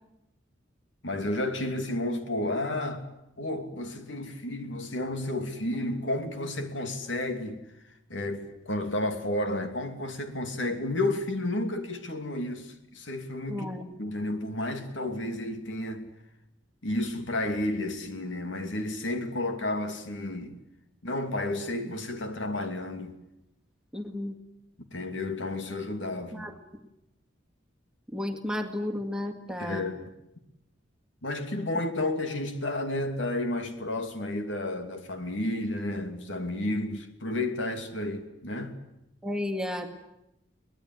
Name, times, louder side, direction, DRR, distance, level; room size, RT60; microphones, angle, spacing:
voice 1, 1.0-3.1 3.4-7.6 8.1-13.7 14.0-16.1 16.8-20.6 21.0-23.2 24.9-26.5 29.6-30.1 31.2-38.7, left 1 dB, 80° left, 2.8 m, -31 dB
voice 2, 13.5-14.0 23.9-24.4 26.3-26.6 28.1-29.9 39.2-39.9, left 1 dB, 5° right, 2.0 m, -33 dB
23.5 x 19.5 x 9.6 m
head